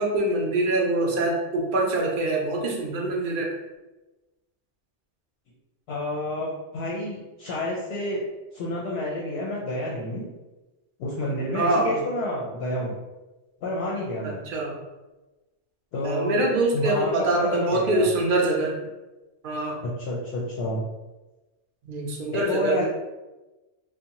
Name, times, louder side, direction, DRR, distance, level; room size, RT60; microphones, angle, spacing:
voice 1, 0.0-3.5 11.5-12.0 14.2-14.8 16.0-18.7 19.4-19.8 21.8-22.8, right 2 dB, 55° right, 0 dB, 0.6 m, -24 dB
voice 2, 5.9-8.2 8.5-10.3 11.0-12.9 13.6-14.4 15.9-17.1 17.4-18.0 19.8-20.8 22.3-22.8, left 1 dB, 65° left, -5 dB, 0.8 m, -29 dB
2.6 x 2.2 x 2.8 m, 1.1 s
omnidirectional pair, 1.2 m